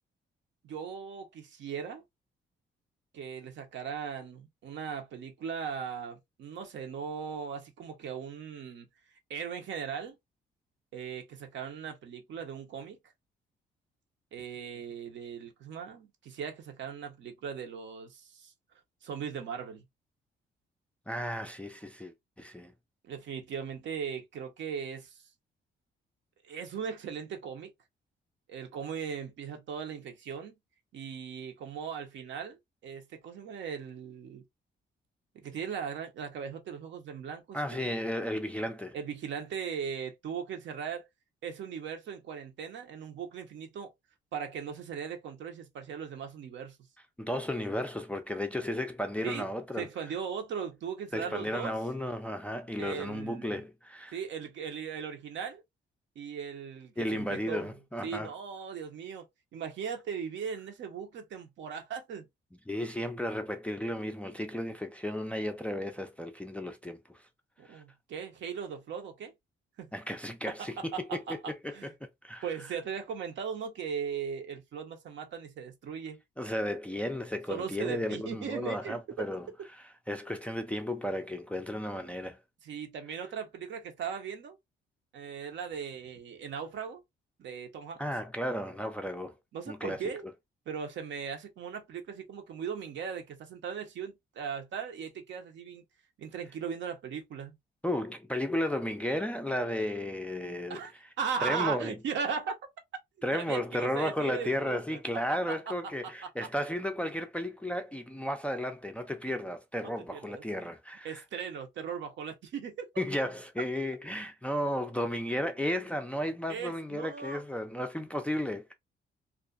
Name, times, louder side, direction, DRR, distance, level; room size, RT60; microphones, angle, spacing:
voice 1, 0.6-2.0 3.1-8.9 9.3-10.2 10.9-13.0 14.3-18.5 19.0-19.8 23.0-25.2 26.4-27.7 28.5-30.5 30.9-34.4 35.3-37.9 38.9-41.1 41.4-43.9 44.3-46.8 49.2-49.5 49.8-51.8 52.8-53.6 54.1-55.6 56.2-57.7 58.0-59.2 59.5-62.3 67.6-69.3 69.8-69.9 70.5-71.4 71.7-71.9 72.4-76.2 77.5-79.2 82.6-84.6 85.1-87.0 87.4-88.1 89.5-90.2 90.7-95.8 96.2-97.6 100.7-100.9 101.2-102.6 103.3-105.0 105.5-105.7 106.4-106.5 110.1-110.7 111.0-112.9 116.5-117.4, right 7 dB, 65° right, 0.8 m, -38 dB
voice 2, 21.1-22.7 37.5-39.0 47.2-49.9 51.1-54.2 57.0-58.3 62.7-67.2 67.7-67.8 69.9-72.4 76.4-82.4 88.0-89.4 89.7-90.0 97.8-100.8 101.4-102.0 103.2-111.2 113.0-118.7, left 1 dB, 5° left, 0.3 m, -34 dB
2.4 x 2.2 x 2.4 m
cardioid pair, 90°, 20 cm